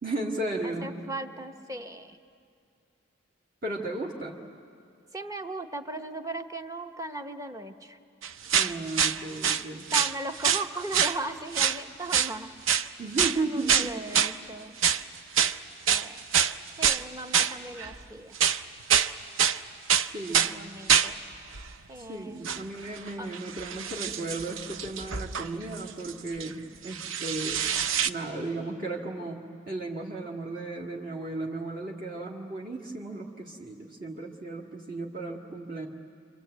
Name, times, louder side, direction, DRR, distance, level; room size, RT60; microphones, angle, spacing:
voice 1, 0.0-1.0 3.6-4.4 8.5-9.9 13.0-14.0 20.1-20.6 21.9-27.7 28.0-35.9, right 2 dB, 45° right, -1 dB, 1.8 m, -35 dB
voice 2, 0.6-2.2 5.1-8.0 9.9-12.5 13.4-14.8 15.9-16.4 16.8-18.4 20.4-21.2 21.9-22.5 23.2-23.3, right 2 dB, 15° right, 7 dB, 0.9 m, -37 dB
sound 1, 8.2-9.6 9.9-10.7 10.9-11.2 11.5-11.8 12.1-12.3 12.7-12.9 13.2-13.4 13.7-14.4 14.8-15.0 15.3-15.6 15.9-17.0 17.3-18.0 18.3-19.1 19.4-19.6 19.9-20.5 20.9-21.1 21.5-21.7 22.4-22.6 23.0-26.5 26.8-28.1, right 8 dB, 75° right, 0.7 m, -25 dB
26.5 x 26.5 x 8.0 m, 2.4 s
head